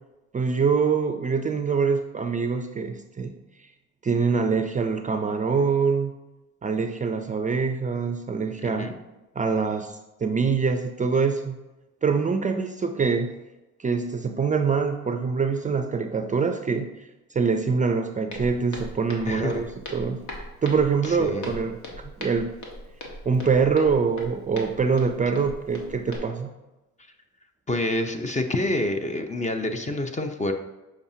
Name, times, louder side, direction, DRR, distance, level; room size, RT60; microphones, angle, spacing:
voice 1, 0.3-3.3 4.0-6.1 6.6-8.9 9.4-11.6 12.0-13.3 13.8-20.2 20.6-22.5 23.3-26.5, right 5 dB, 25° right, 6 dB, 0.4 m, -24 dB
voice 2, 8.6-8.9 19.3-19.6 21.1-21.5 27.7-30.5, left 2 dB, 25° left, 6 dB, 0.7 m, -27 dB
Walk footsteps, 18.3-26.2, left 1 dB, 75° left, 1.4 m, -39 dB
7.0 x 5.0 x 2.7 m, 1.1 s
cardioid pair, 90°, 30 cm